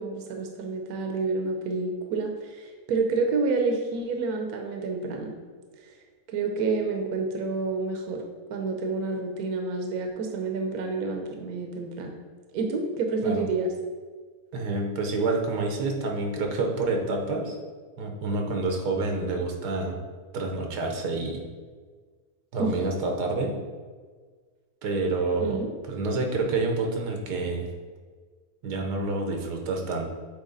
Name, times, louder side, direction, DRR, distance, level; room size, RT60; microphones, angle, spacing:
voice 1, 0.0-5.3 5.8-5.9 6.3-8.2 8.5-12.1 12.5-13.7 22.6-22.9 25.4-25.7, right 3 dB, 75° right, 3 dB, 1.2 m, -29 dB
voice 2, 14.5-17.5 18.0-20.0 20.3-21.4 22.5-23.6 24.8-27.7 28.6-30.1, right 3 dB, 90° right, 2 dB, 1.5 m, -28 dB
8.0 x 3.2 x 3.9 m, 1.5 s
omnidirectional pair, 1.7 m